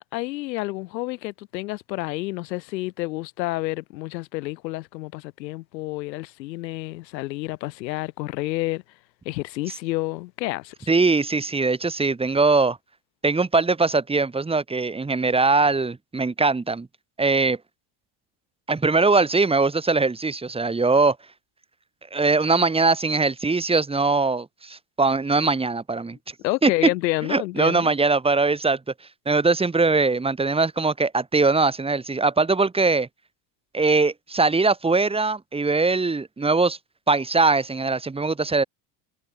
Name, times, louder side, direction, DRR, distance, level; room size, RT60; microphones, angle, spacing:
voice 1, 0.0-8.8 9.2-10.9 26.4-27.9, left 19 dB, 90° left, 5.0 m, -29 dB
voice 2, 10.9-12.8 13.2-16.9 17.2-17.6 18.7-21.2 22.1-26.2 26.6-26.7 27.3-28.8 29.3-33.1 33.7-36.8 37.1-38.6, right 3 dB, 10° right, 1.8 m, -21 dB
supercardioid pair, 115°, 49 cm